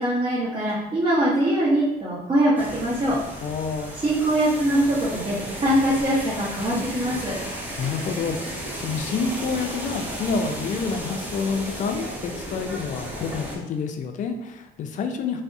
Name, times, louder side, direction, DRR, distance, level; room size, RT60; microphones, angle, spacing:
voice 1, 0.0-3.2 4.0-7.3, right 1 dB, 30° right, -9 dB, 0.8 m, -22 dB
sound 1, 2.6-13.6, right 1 dB, 10° right, 0.5 m, -34 dB
voice 2, 3.4-3.9 7.4-15.4, left 5 dB, 50° left, 6 dB, 0.4 m, -28 dB
3.4 x 2.0 x 2.6 m, 1.0 s
cardioid pair, 110°, 17 cm